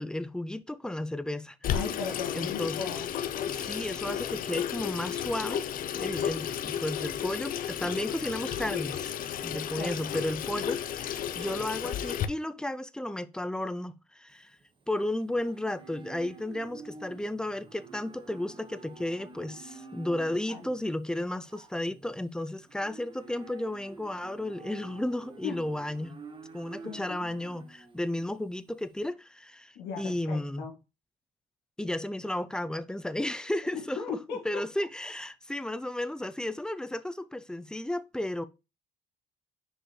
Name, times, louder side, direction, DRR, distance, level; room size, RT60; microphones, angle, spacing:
voice 1, 0.0-1.6 2.3-2.9 3.5-5.7 5.9-9.1 9.4-14.5 14.9-26.2 26.5-30.6 31.8-38.4, left 1 dB, 5° left, 0.4 m, -33 dB
Water tap faucet / Sink (filling or washing), 1.6-12.3, left 9 dB, 55° left, 0.7 m, -33 dB
voice 2, 1.7-3.1 6.2-6.3 9.5-10.1 20.5-20.6 25.4-25.6 26.8-27.3 29.8-30.7 33.7-34.6, left 5 dB, 90° left, 1.8 m, -38 dB
Livestock farm animals working animals, 14.3-29.0, right 4 dB, 30° right, 1.0 m, -49 dB
6.3 x 4.9 x 3.1 m
cardioid pair, 110°, 17 cm